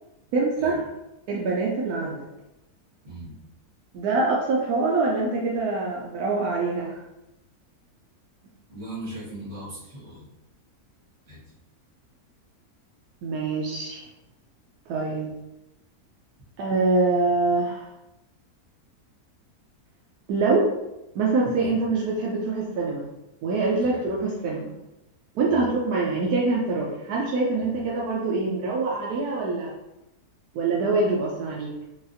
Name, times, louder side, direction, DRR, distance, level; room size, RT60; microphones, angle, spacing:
voice 1, 0.3-0.8 1.3-2.3 3.9-7.0 13.2-14.0 14.9-15.3 16.6-17.9 20.3-20.7 21.1-23.1 23.4-24.7 25.4-29.7 30.5-31.7, right 3 dB, 80° right, -3 dB, 1.1 m, -24 dB
voice 2, 3.0-3.4 8.7-10.3 11.3-11.4 21.6-21.7 23.8-24.1 25.5-25.7 27.8-27.9, right 1 dB, 45° right, -7 dB, 1.5 m, -39 dB
3.9 x 2.4 x 2.5 m, 0.93 s
omnidirectional pair, 1.6 m